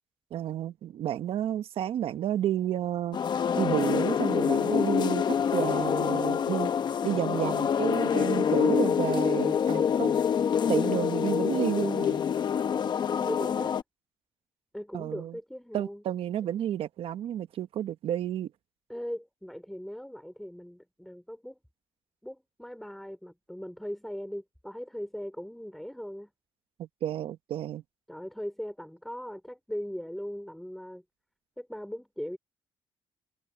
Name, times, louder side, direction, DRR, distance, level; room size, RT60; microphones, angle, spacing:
voice 1, 0.3-3.2 3.5-5.2 5.5-6.7 7.0-10.1 10.7-12.2 14.9-15.4 15.7-18.5 26.8-27.8, right 11 dB, 75° right, 1.2 m, -31 dB
sound 1, 3.1-13.8, left 7 dB, 50° left, 0.9 m, -26 dB
voice 2, 13.2-13.8 14.7-16.0 18.9-21.6 22.2-26.3 28.1-31.0 31.6-32.4, equal, ahead, 4.7 m, -39 dB
cardioid pair, 115°, 10 cm